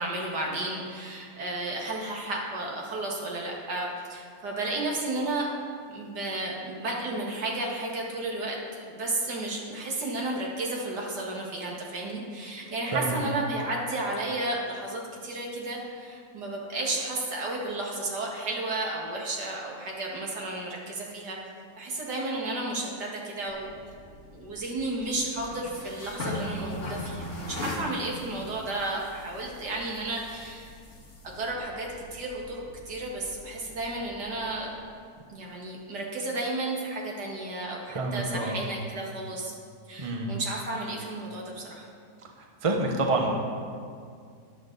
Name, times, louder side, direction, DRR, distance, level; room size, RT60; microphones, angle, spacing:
voice 1, 0.0-5.5 5.9-21.4 21.8-23.7 24.3-30.7 31.2-34.7 35.3-39.6 39.9-41.9, right 2 dB, 85° right, -2 dB, 2.5 m, -33 dB
voice 2, 12.9-13.2 37.9-38.6 40.0-40.3 42.4-43.3, right 2 dB, 25° right, 1 dB, 0.9 m, -28 dB
sound 1, 23.5-34.7, left 1 dB, 45° left, 2.6 m, -41 dB
13.5 x 10.5 x 4.0 m, 2.2 s
omnidirectional pair, 1.7 m